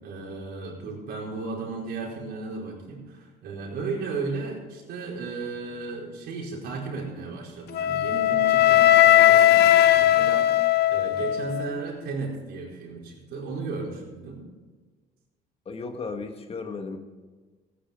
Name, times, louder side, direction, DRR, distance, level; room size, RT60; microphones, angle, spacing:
voice 1, 0.0-10.5 10.9-14.4, right 4 dB, 75° right, -3 dB, 4.6 m, -35 dB
Wind instrument woodwind instrument, 7.7-11.8, left 13 dB, 70° left, 0.7 m, -18 dB
voice 2, 15.6-17.0, left 4 dB, 35° left, 6 dB, 1.4 m, -35 dB
15.5 x 9.7 x 5.2 m, 1.4 s
cardioid pair, 110°, 17 cm